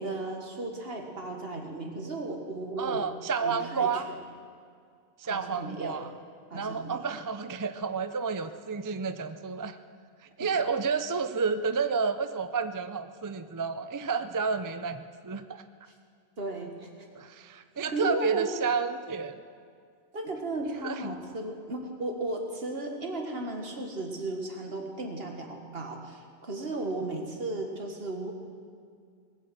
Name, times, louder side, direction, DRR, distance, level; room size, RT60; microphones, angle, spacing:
voice 1, 0.0-3.0 3.4-4.0 5.2-6.0 6.5-7.1 10.4-10.5 16.4-16.9 17.9-18.6 20.1-28.3, right 2 dB, 60° right, 3 dB, 2.0 m, -35 dB
voice 2, 2.8-4.1 5.2-6.1 6.5-9.8 10.4-15.6 17.2-19.4 20.8-21.1, right 5 dB, 30° right, 10 dB, 0.4 m, -30 dB
19.0 x 8.2 x 7.9 m, 2.2 s
omnidirectional pair, 1.1 m